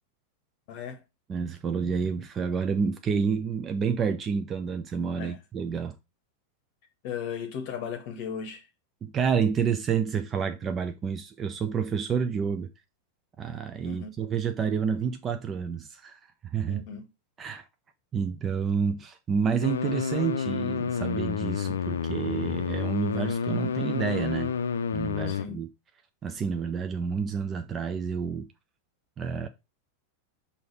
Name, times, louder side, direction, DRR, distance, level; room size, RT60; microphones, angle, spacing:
voice 1, 0.7-1.0 5.1-5.4 7.0-8.7 13.8-14.1 16.7-17.0 25.3-25.6, left 7 dB, 45° left, 0.9 m, -36 dB
voice 2, 1.3-6.0 9.0-12.7 13.4-16.2 16.5-16.8 17.4-17.6 18.1-24.5 24.9-25.7 26.2-28.5 29.2-29.5, right 6 dB, 25° right, 0.5 m, -29 dB
sound 1, 19.6-25.4, left 7 dB, 65° left, 0.5 m, -29 dB
6.3 x 2.9 x 5.2 m
figure-of-eight pair, 90°, 0 cm